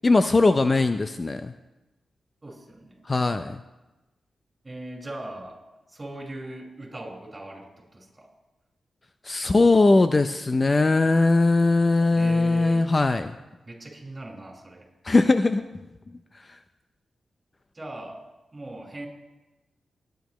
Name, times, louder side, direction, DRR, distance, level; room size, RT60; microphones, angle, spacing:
voice 1, 0.0-1.5 3.0-3.6 9.2-13.3 15.0-15.6 16.3-16.6, left 3 dB, 30° left, 9 dB, 0.5 m, -20 dB
voice 2, 2.4-3.0 4.6-5.6 5.9-8.3 9.4-9.8 12.2-12.8 13.6-14.9 17.7-18.2 18.5-19.1, right 1 dB, 25° right, -1 dB, 5.2 m, -40 dB
22.0 x 10.5 x 3.1 m, 1.0 s
cardioid pair, 80°, 0 cm